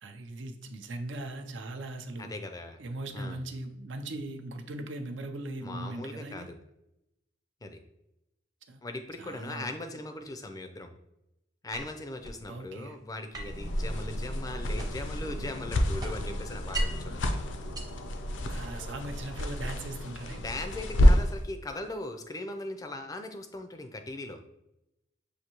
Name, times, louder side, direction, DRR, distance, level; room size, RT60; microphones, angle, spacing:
voice 1, 0.0-2.3 2.8-6.5 8.7-8.8 9.2-9.7 12.5-13.0 18.5-20.4, right 2 dB, 70° right, 5 dB, 0.5 m, -39 dB
voice 2, 2.2-2.8 3.1-3.4 5.6-6.6 7.6-7.8 8.8-11.0 11.6-17.4 20.4-24.4, left 2 dB, 20° left, 6 dB, 0.4 m, -39 dB
sound 1, 11.7-12.4 13.3-15.2 15.5-17.1 17.6-18.7, right 1 dB, 20° right, 0.7 m, -38 dB
sound 2, 13.4-21.4, left 1 dB, 75° left, 0.5 m, -28 dB
6.5 x 2.6 x 2.9 m, 0.88 s
head